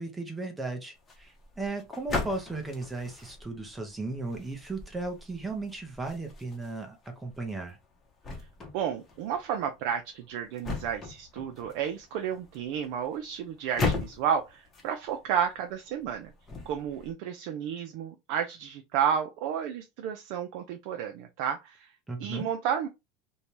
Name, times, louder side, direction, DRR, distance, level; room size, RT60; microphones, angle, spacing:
voice 1, 0.0-7.8 22.1-22.5, right 3 dB, 10° right, 0.6 m, -36 dB
sound 1, 1.0-17.1, left 3 dB, 20° left, 0.8 m, -39 dB
voice 2, 8.6-16.3 16.7-21.9 22.2-22.9, right 8 dB, 60° right, 0.4 m, -31 dB
2.7 x 2.2 x 3.0 m
supercardioid pair, 145°, 0 cm